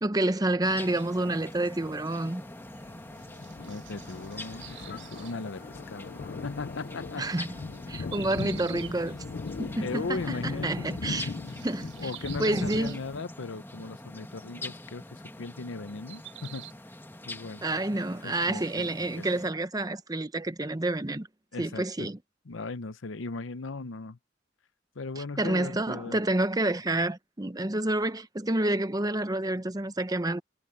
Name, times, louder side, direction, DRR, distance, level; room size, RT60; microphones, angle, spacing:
voice 1, 0.0-2.4 7.2-7.5 7.9-9.2 9.6-11.3 11.6-12.1 12.4-13.0 17.6-21.3 21.6-22.2 25.2-30.4, right 1 dB, 20° right, 0.8 m, -29 dB
sound 1, 0.6-19.5, left 1 dB, 10° left, 2.1 m, -44 dB
sound 2, 0.8-13.2, left 4 dB, 50° left, 0.4 m, -39 dB
sound 3, 1.0-1.1 2.8-2.9 3.2-5.4 7.7-9.0 11.1-13.0 15.9-16.7, right 14 dB, 85° right, 5.5 m, -47 dB
voice 2, 3.6-6.1 6.4-7.2 8.2-8.4 9.7-10.8 12.0-16.7 17.3-18.0 18.2-18.9 19.2-19.3 21.5-22.1 22.5-24.2 24.9-26.2, left 3 dB, 85° left, 0.8 m, -38 dB
head